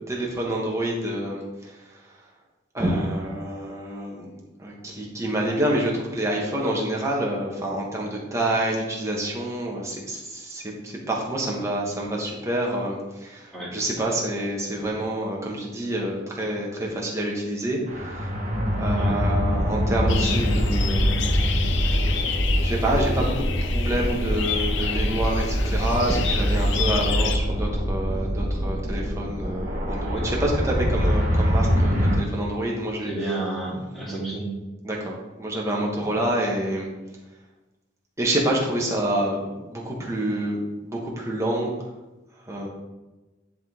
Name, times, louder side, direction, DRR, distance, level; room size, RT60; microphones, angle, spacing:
voice 1, 0.1-1.8 2.7-4.3 4.6-18.3 18.8-21.3 22.6-33.3 34.8-36.9 38.2-40.6 40.8-41.7 42.4-42.7, right 1 dB, 15° right, -2 dB, 1.4 m, -27 dB
sound 1, 17.9-32.2, equal, 35° right, 1.6 m, -24 dB
sound 2, 20.1-27.4, left 5 dB, 65° left, 0.6 m, -29 dB
voice 2, 33.0-34.5 36.0-36.1, right 2 dB, ahead, -8 dB, 2.5 m, -31 dB
10.5 x 3.8 x 3.8 m, 1.1 s
head